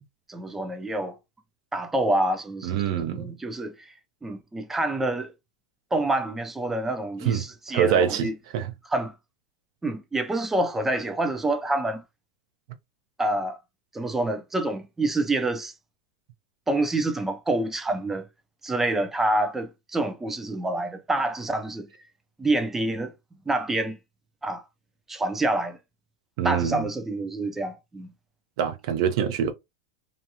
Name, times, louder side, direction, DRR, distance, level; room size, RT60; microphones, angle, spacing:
voice 1, 0.3-1.2 1.7-3.9 4.2-5.3 5.9-8.4 8.9-9.1 9.8-12.0 13.2-13.6 13.9-15.7 16.7-18.3 18.6-21.9 22.4-23.1 23.5-24.0 24.4-24.6 25.1-25.8 26.4-28.1, right 2 dB, 10° right, 0.4 m, -27 dB
voice 2, 2.6-3.3 7.2-8.7 26.4-26.9 28.6-29.5, right 8 dB, 60° right, 0.6 m, -25 dB
2.5 x 2.2 x 2.8 m
supercardioid pair, 135°, 3 cm